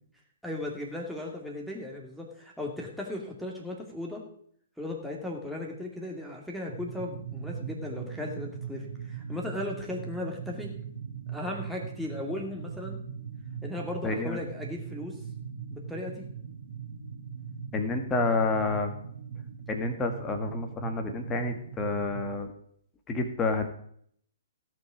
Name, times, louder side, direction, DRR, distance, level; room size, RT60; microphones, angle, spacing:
voice 1, 0.4-4.2 4.8-10.7 11.3-13.0 13.6-15.2 15.7-16.2, left 1 dB, ahead, -1 dB, 2.6 m, -36 dB
sound 1, 6.7-22.3, right 6 dB, 55° right, 2.4 m, -40 dB
voice 2, 14.0-14.4 17.7-18.9 19.7-22.5 23.1-23.7, left 3 dB, 20° left, 5 dB, 1.9 m, -29 dB
17.0 x 6.0 x 5.0 m, 0.64 s
figure-of-eight pair, 120°, 0 cm